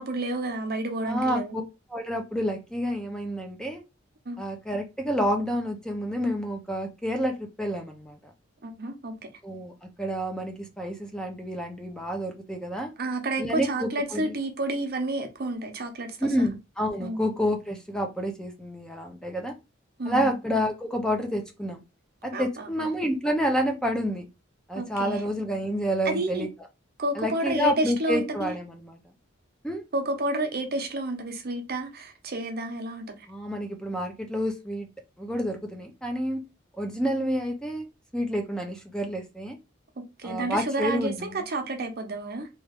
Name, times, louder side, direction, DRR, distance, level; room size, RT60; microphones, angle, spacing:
voice 1, 0.0-1.6 4.3-4.4 8.6-9.1 13.0-16.1 17.0-17.2 20.0-20.3 22.3-22.7 24.8-25.2 26.1-26.5 27.0-28.5 29.9-33.1 40.0-42.5, right 2 dB, 55° right, 0.7 m, -30 dB
voice 2, 1.0-1.6 1.9-3.8 4.4-8.2 9.4-9.7 10.0-12.9 13.4-14.3 16.2-19.5 20.1-21.8 22.2-24.3 24.7-26.5 27.1-29.0 29.6-29.8 33.3-34.9 35.2-36.4 36.8-37.8 38.1-39.6 40.2-41.4, equal, 5° left, 0.5 m, -29 dB
3.0 x 2.4 x 3.4 m
head